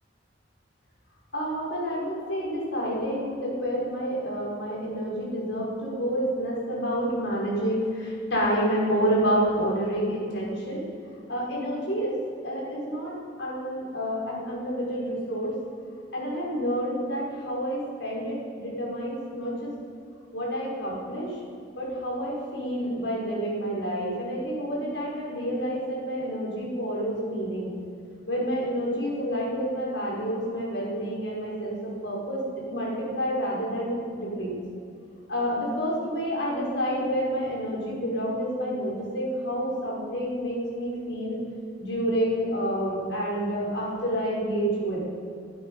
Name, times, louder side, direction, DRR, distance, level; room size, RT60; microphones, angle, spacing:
voice 1, 1.3-10.8 11.3-12.1 12.4-15.5 16.1-19.7 20.3-21.3 21.8-27.7 28.3-32.4 32.7-34.6 35.3-41.4 41.8-45.0, equal, 80° left, -4 dB, 5.4 m, -29 dB
22.0 x 11.5 x 5.6 m, 2.4 s
head